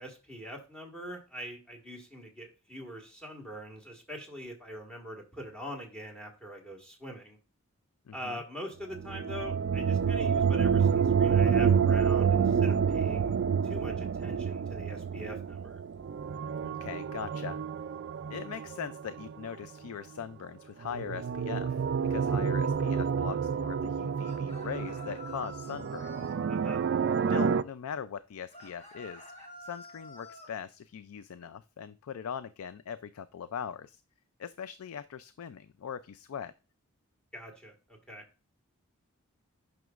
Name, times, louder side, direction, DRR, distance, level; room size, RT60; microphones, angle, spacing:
voice 1, 0.0-7.4 8.1-13.4 13.6-15.8 26.5-26.8 37.3-38.2, equal, 5° left, 1 dB, 1.6 m, -43 dB
voice 2, 8.1-8.4 16.6-17.6 18.3-21.8 22.1-26.1 27.3-29.3 29.6-34.0 34.4-36.5, left 7 dB, 80° left, 14 dB, 0.4 m, -40 dB
sound 1, 8.9-19.7 20.8-27.6, right 6 dB, 50° right, 0.3 m, -28 dB
sound 2, 24.2-26.4 28.5-30.5, left 1 dB, 25° left, 1.3 m, -48 dB
9.1 x 6.1 x 2.4 m, 0.32 s
head